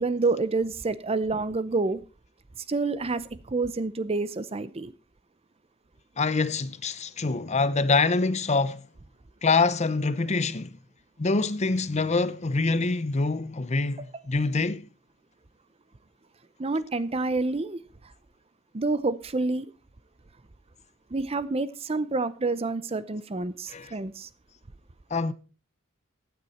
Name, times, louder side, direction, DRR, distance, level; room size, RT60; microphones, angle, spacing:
voice 1, 0.0-2.0 2.7-4.9 14.0-14.1 16.6-17.8 18.7-19.7 21.1-24.3, right 3 dB, 30° right, 0.6 m, -28 dB
voice 2, 6.2-8.9 9.4-10.7 11.2-14.9 23.7-23.9 25.1-25.3, left 3 dB, 30° left, 0.6 m, -25 dB
15.0 x 9.4 x 4.2 m
head